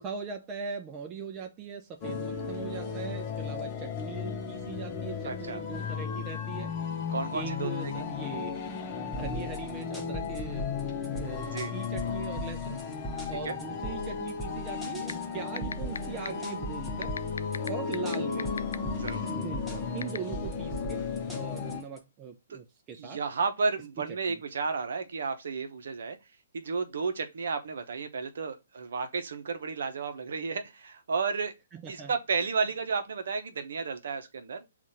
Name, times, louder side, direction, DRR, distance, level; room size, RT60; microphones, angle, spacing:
voice 1, 0.0-6.7 7.3-8.7 9.1-10.7 11.2-12.8 13.3-17.1 17.7-18.6 19.3-21.0 21.3-23.2 24.3-24.4 31.7-32.1, right 6 dB, 25° right, 0.5 m, -40 dB
sound 1, 2.0-21.8, left 6 dB, 30° left, 0.8 m, -35 dB
voice 2, 5.2-5.6 7.1-7.9 11.5-11.7 13.4-13.5 19.0-19.3 22.5-22.6 23.0-26.2 26.5-31.5 31.9-34.6, right 4 dB, 70° right, 0.8 m, -32 dB
sound 2, 9.1-22.0, equal, ahead, 1.0 m, -40 dB
sound 3, 15.1-15.2 15.6-16.0 16.2-16.3 17.0-18.7 19.1-19.2 20.0-20.2, left 5 dB, 80° left, 0.3 m, -32 dB
7.2 x 2.5 x 2.7 m
hypercardioid pair, 135°, 0 cm